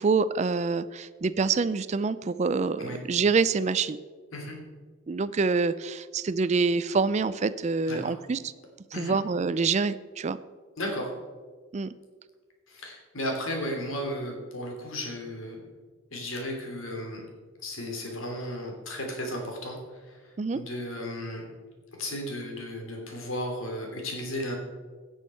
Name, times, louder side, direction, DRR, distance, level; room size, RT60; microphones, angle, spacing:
voice 1, 0.0-4.0 5.1-8.4 9.0-10.4 11.7-11.9 20.4-20.6, right 4 dB, 35° right, 15 dB, 0.4 m, -26 dB
voice 2, 10.8-11.1 12.7-15.6 16.1-17.3 17.6-21.5 22.0-24.6, left 1 dB, 80° left, 1 dB, 3.1 m, -34 dB
17.0 x 6.4 x 5.6 m, 1.5 s
head